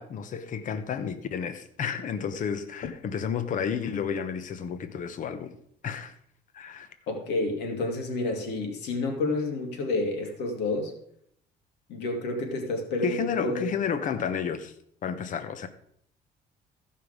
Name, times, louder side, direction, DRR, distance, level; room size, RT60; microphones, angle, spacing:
voice 1, 0.0-5.6 5.8-6.1 6.5-6.9 13.0-14.7 15.0-15.7, left 7 dB, 50° left, 0.9 m, -31 dB
voice 2, 7.1-10.9 11.9-13.6, left 2 dB, 85° left, 2.3 m, -29 dB
15.0 x 5.6 x 5.0 m
cardioid pair, 110°, 17 cm